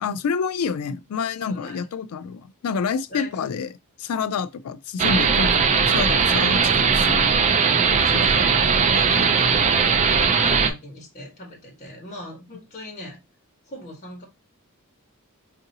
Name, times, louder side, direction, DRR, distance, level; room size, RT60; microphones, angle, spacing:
voice 1, 0.0-3.7 4.0-7.4 8.1-8.2, left 5 dB, 75° left, 0.4 m, -28 dB
voice 2, 1.5-1.8 3.1-3.3 8.0-8.6 8.9-13.2 13.7-14.2, left 1 dB, 35° left, 1.3 m, -38 dB
sound 1, 5.0-10.7, right 5 dB, 30° right, 0.4 m, -19 dB
4.6 x 2.6 x 2.7 m
head